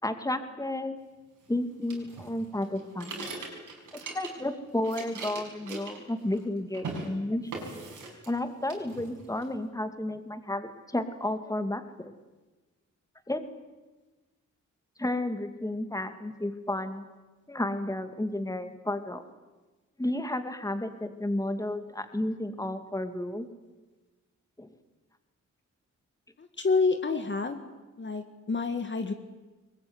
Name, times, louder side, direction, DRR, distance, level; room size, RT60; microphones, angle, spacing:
voice 1, 0.0-1.0 1.5-3.3 3.9-7.5 8.3-12.1 13.3-13.4 15.0-17.0 17.5-19.2 20.0-23.5 24.6-24.7, left 1 dB, 10° left, 8 dB, 2.3 m, -32 dB
sound 1, 1.9-4.5 4.8-6.5 6.7-7.1 7.5-8.4 8.7-9.5, right 3 dB, 90° right, 6.1 m, -40 dB
voice 2, 26.4-27.7 28.0-29.1, left 4 dB, 40° left, 7 dB, 1.7 m, -28 dB
22.5 x 20.5 x 9.7 m, 1.2 s
cardioid pair, 80°, 30 cm